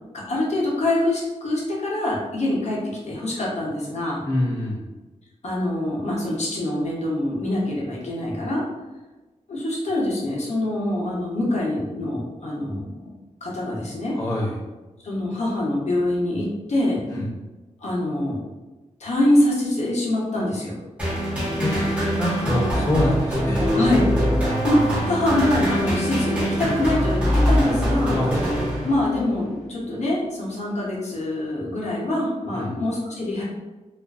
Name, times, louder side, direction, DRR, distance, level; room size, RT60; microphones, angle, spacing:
voice 1, 0.3-2.8 3.0-4.2 5.4-8.6 9.5-13.1 13.4-14.1 15.0-17.0 17.8-18.4 19.0-20.8 23.7-24.1 24.6-28.2 28.8-33.4, left 1 dB, 60° left, -4 dB, 0.7 m, -24 dB
voice 2, 4.2-4.9 14.1-14.6 17.1-17.3 21.6-21.7 22.1-23.7 28.1-28.4 32.5-32.8, left 1 dB, 20° left, -4 dB, 0.4 m, -25 dB
sound 1, 21.0-29.3, equal, 10° right, 1.0 m, -23 dB
2.5 x 2.3 x 2.3 m, 1.2 s
wide cardioid pair, 125°, 13 cm